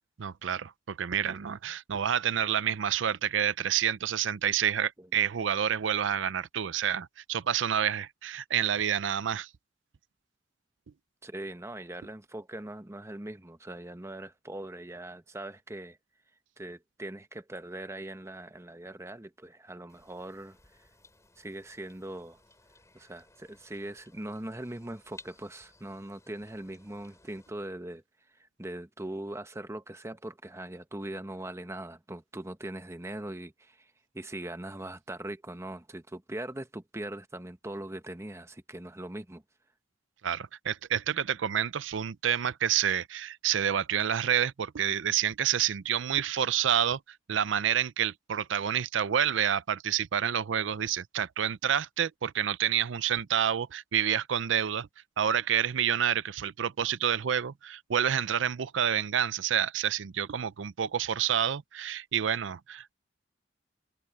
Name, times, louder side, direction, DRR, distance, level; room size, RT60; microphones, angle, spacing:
voice 1, 0.2-9.5 40.2-47.0 47.3-54.9 55.2-62.9, right 9 dB, 85° right, 0.5 m, -28 dB
voice 2, 11.2-16.0 16.6-20.8 21.4-22.4 22.9-28.0 28.3-39.4, right 1 dB, 15° right, 1.1 m, -41 dB
sound 1, 19.9-27.5, left 3 dB, 15° left, 4.5 m, -58 dB
head